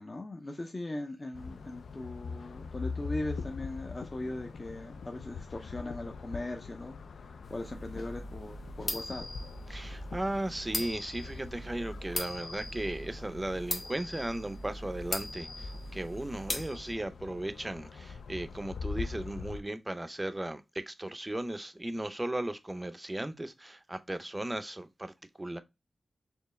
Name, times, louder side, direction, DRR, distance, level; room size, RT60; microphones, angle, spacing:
voice 1, 0.0-9.3, left 2 dB, 30° left, 0.5 m, -39 dB
sound 1, 1.3-19.6, left 5 dB, 85° left, 0.3 m, -43 dB
sound 2, 7.4-16.9, left 2 dB, 60° left, 1.0 m, -40 dB
voice 2, 9.7-25.6, right 1 dB, 15° right, 0.5 m, -36 dB
4.5 x 2.7 x 3.1 m
wide cardioid pair, 85°, 0 cm